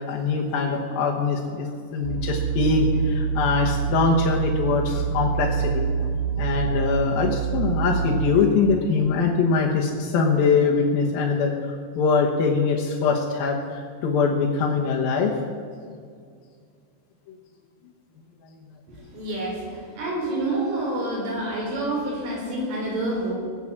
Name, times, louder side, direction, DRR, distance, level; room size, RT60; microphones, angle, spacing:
voice 1, 0.0-6.1 6.4-15.4 17.3-17.4, left 4 dB, 65° left, -2 dB, 2.6 m, -23 dB
sound 1, 2.0-8.3, right 7 dB, 70° right, 3.9 m, -26 dB
voice 2, 18.9-23.3, right 1 dB, 50° right, -3 dB, 5.8 m, -28 dB
20.0 x 8.6 x 7.4 m, 2.2 s
omnidirectional pair, 5.3 m